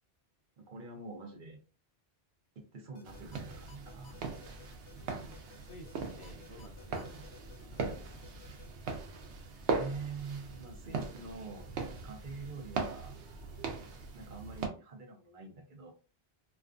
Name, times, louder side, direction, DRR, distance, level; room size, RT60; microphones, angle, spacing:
voice 1, 0.6-1.6 2.6-4.2 9.7-11.7 12.0-13.2 14.1-15.9, right 4 dB, 55° right, 2 dB, 0.8 m, -45 dB
sound 1, 2.9-8.7, left 9 dB, 80° left, 0.9 m, -57 dB
sound 2, 3.0-14.7, right 4 dB, 85° right, 0.9 m, -40 dB
voice 2, 4.9-7.3 7.7-8.2, equal, 40° left, 1 dB, 0.5 m, -53 dB
2.4 x 2.3 x 2.4 m, 0.35 s
omnidirectional pair, 1.1 m